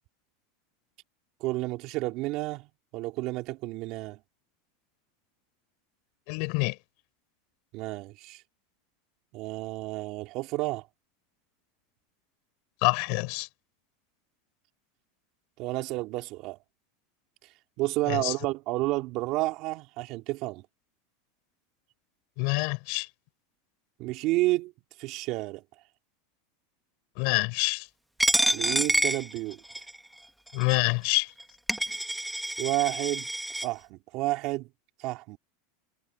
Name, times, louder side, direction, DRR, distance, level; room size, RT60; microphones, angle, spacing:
voice 1, 1.4-2.7 2.9-4.2 7.7-8.4 9.3-10.9 15.6-16.6 17.8-20.6 24.0-24.7 25.0-25.6 28.5-29.6 32.6-33.3 33.6-34.7 35.0-35.4, right 20 dB, 50° right, 3.1 m, -30 dB
voice 2, 6.3-6.8 12.8-13.5 18.1-18.3 22.4-23.1 27.2-27.9 30.5-31.3, left 34 dB, 60° left, 7.2 m, -26 dB
Coin (dropping), 28.2-30.0 30.6-30.7 31.4-31.5 31.7-33.7, right 1 dB, ahead, 1.5 m, -27 dB
supercardioid pair, 130°, 0 cm